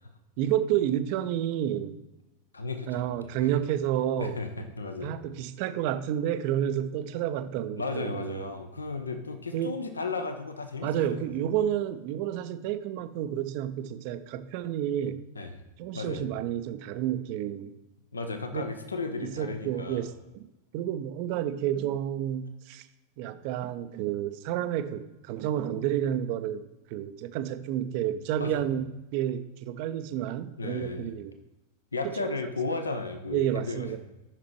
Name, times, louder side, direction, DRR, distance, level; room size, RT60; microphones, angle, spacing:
voice 1, 0.4-2.0 2.9-4.4 5.0-8.4 9.5-9.8 10.8-15.2 15.8-17.7 18.5-18.7 19.2-20.5 20.7-22.9 23.2-31.3 33.3-34.0, right 11 dB, 45° right, 12 dB, 0.4 m, -30 dB
voice 2, 2.5-3.1 4.2-5.1 7.8-11.2 15.4-15.5 15.9-16.2 18.1-20.1 28.4-28.6 30.6-31.1 31.9-34.0, left 3 dB, 75° left, 7 dB, 0.6 m, -34 dB
5.9 x 5.8 x 4.6 m, 1.0 s
figure-of-eight pair, 90°, 0 cm